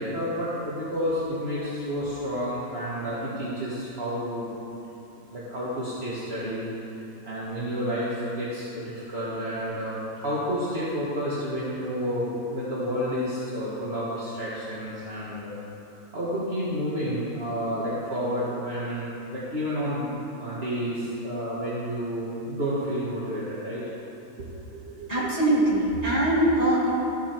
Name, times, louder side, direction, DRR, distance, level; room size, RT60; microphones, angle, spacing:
voice 1, 0.0-4.5 5.3-6.7 7.2-15.5 16.1-23.8 24.4-25.3, equal, 50° right, -9 dB, 1.9 m, -30 dB
voice 2, 25.1-26.9, right 1 dB, 30° right, -7 dB, 2.5 m, -22 dB
13.5 x 8.1 x 4.5 m, 2.9 s
omnidirectional pair, 1.4 m